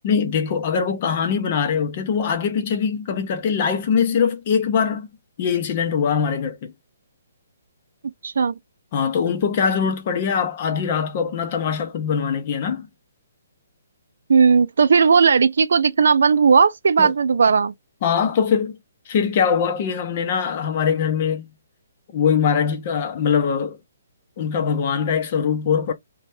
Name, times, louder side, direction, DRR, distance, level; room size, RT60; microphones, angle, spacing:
voice 1, 0.0-5.1 5.4-6.7 8.9-12.9 17.0-17.1 18.0-18.8 19.1-21.5 22.1-23.8 24.4-25.9, left 6 dB, 30° left, 0.6 m, -22 dB
voice 2, 8.2-8.6 14.3-17.7, right 5 dB, 70° right, 0.4 m, -16 dB
3.3 x 2.2 x 2.6 m
hypercardioid pair, 175°, 0 cm